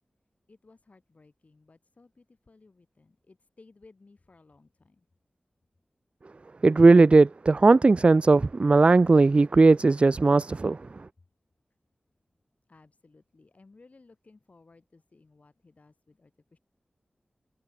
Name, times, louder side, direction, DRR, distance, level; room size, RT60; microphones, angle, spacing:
voice 1, 0.5-5.0 12.7-16.6, left 3 dB, 55° left, 6.7 m, -58 dB
voice 2, 6.6-10.8, right 3 dB, 40° right, 0.3 m, -18 dB
wide cardioid pair, 70°, 3 cm